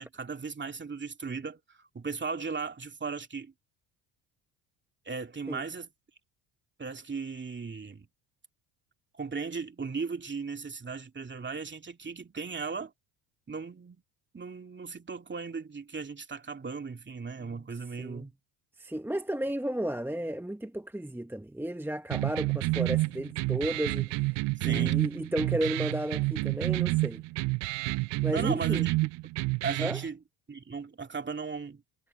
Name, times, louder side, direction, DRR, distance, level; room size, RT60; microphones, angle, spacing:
voice 1, 0.0-3.5 5.1-5.9 6.8-8.1 9.1-12.9 13.5-14.0 14.3-18.3 24.6-25.0 28.3-28.9 29.6-30.2 30.5-31.8, right 5 dB, 25° right, 2.6 m, -37 dB
voice 2, 18.0-18.3 18.8-27.2 28.2-28.9 29.8-30.0, right 1 dB, 5° right, 1.3 m, -33 dB
sound 1, 22.1-30.1, right 22 dB, 60° right, 0.9 m, -29 dB
hypercardioid pair, 65°, 48 cm